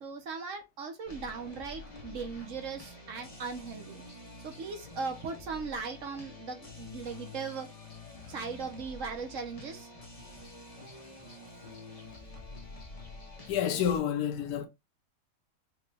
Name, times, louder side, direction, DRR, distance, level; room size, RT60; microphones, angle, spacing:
voice 1, 0.0-4.0 4.4-7.7 8.3-9.9, right 5 dB, 60° right, 1.0 m, -38 dB
sound 1, 1.1-14.0, left 2 dB, 35° left, 0.6 m, -48 dB
voice 2, 13.5-14.7, left 9 dB, 75° left, 1.2 m, -30 dB
4.8 x 2.3 x 3.3 m
omnidirectional pair, 1.7 m